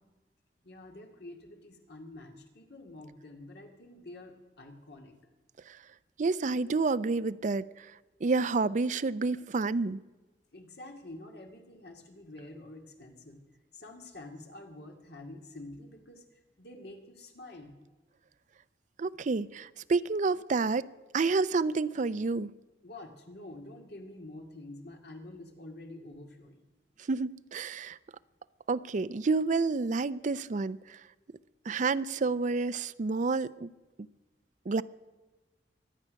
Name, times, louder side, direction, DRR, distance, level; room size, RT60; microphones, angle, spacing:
voice 1, 0.6-5.1 10.5-13.4 13.7-17.7 22.8-26.6, left 2 dB, 65° left, 3 dB, 2.1 m, -48 dB
voice 2, 6.2-7.9 8.2-10.0 19.0-20.8 21.1-22.5 27.1-28.0 28.7-31.0 31.7-33.7 34.7-34.8, right 4 dB, 45° right, 15 dB, 0.4 m, -29 dB
24.0 x 8.7 x 6.3 m, 1.2 s
head